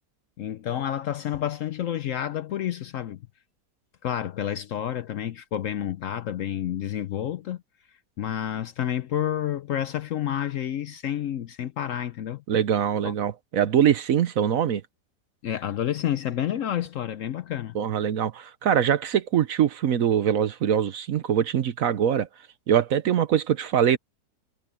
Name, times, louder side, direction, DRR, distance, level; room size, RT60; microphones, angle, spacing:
voice 1, 0.4-3.2 4.0-7.6 8.2-12.4 13.0-13.1 15.4-17.8, left 10 dB, 65° left, 0.9 m, -29 dB
voice 2, 12.5-14.8 17.7-22.3 22.7-24.0, right 9 dB, 60° right, 1.1 m, -23 dB
omnidirectional pair, 1.7 m